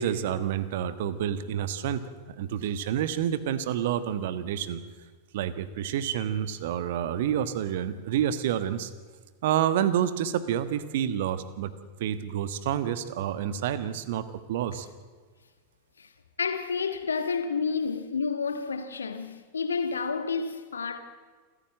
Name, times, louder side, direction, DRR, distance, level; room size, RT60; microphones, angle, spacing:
voice 1, 0.0-2.0 2.4-4.8 5.3-8.9 9.4-11.7 12.0-14.9, right 10 dB, 55° right, 1.3 m, -28 dB
voice 2, 16.4-21.0, left 5 dB, 70° left, 1.7 m, -30 dB
28.0 x 15.0 x 7.6 m
figure-of-eight pair, 90°, 0 cm